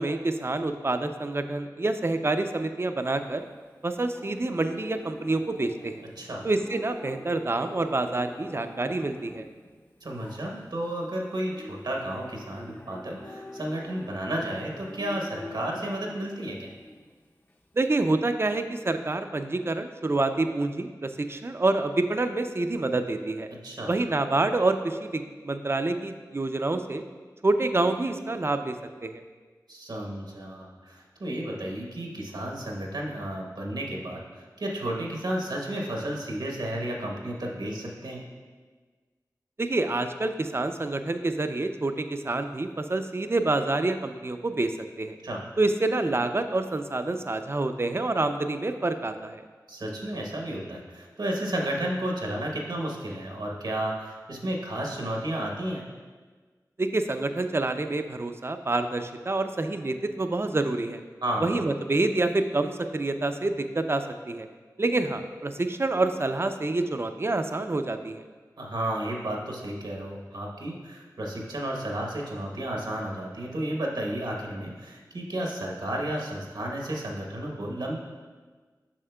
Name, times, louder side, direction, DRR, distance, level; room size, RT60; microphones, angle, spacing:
voice 1, 0.0-3.5 3.8-6.0 6.4-9.5 17.8-23.5 23.9-27.0 27.4-28.8 29.0-29.2 39.6-45.2 45.6-49.4 56.8-61.0 61.4-64.5 64.8-68.2, right 2 dB, 35° right, 8 dB, 0.4 m, -27 dB
Livestock farm animals working animals, 3.0-17.7, left 1 dB, 25° left, 0.6 m, -46 dB
voice 2, 10.0-16.7 23.6-23.9 29.7-38.2 45.2-45.4 49.7-55.8 61.2-61.6 68.6-78.0, right 1 dB, 80° right, -1 dB, 1.0 m, -32 dB
7.3 x 6.1 x 2.3 m, 1.4 s
cardioid pair, 40°, 7 cm